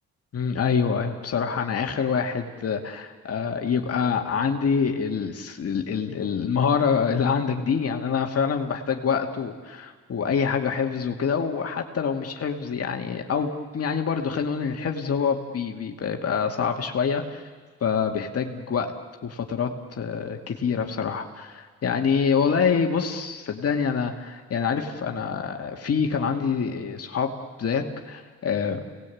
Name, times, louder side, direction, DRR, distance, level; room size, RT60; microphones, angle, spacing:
voice 1, 0.3-17.4 17.8-18.9 19.2-27.3 27.6-28.8, left 6 dB, 50° left, 3 dB, 2.3 m, -26 dB
29.0 x 19.0 x 8.6 m, 1.5 s
cardioid pair, 90°, 30 cm